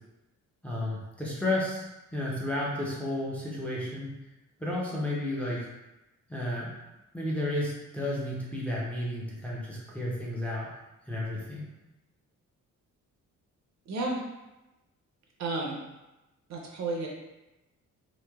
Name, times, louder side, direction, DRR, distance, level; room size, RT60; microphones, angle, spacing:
voice 1, 0.6-1.9 2.1-4.1 4.6-5.7 6.3-6.7 7.1-10.7 11.1-11.7, left 1 dB, 5° left, -5 dB, 0.5 m, -32 dB
voice 2, 13.9-14.2 15.4-15.8 16.5-17.1, right 2 dB, 60° right, -1 dB, 0.6 m, -31 dB
3.0 x 2.1 x 2.2 m, 0.99 s
cardioid pair, 125°, 31 cm